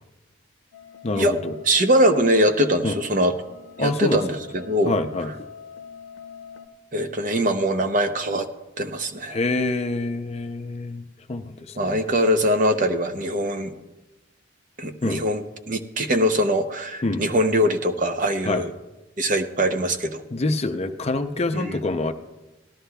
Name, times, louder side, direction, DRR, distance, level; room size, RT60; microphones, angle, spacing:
sound 1, 0.7-6.7, left 7 dB, 80° left, 0.6 m, -44 dB
voice 1, 1.0-1.5 2.8-3.0 3.8-4.2 4.9-5.3 9.3-11.0 11.3-12.0 15.0-15.2 17.0-17.2 18.5-18.6 20.3-22.1, left 2 dB, 30° left, 7 dB, 0.5 m, -26 dB
voice 2, 1.6-3.3 3.8-5.0 6.9-8.5 8.8-9.4 11.8-13.7 14.8-18.7 19.2-20.2 21.5-21.8, equal, 40° right, 8 dB, 0.7 m, -22 dB
17.5 x 13.0 x 2.3 m, 1.1 s
head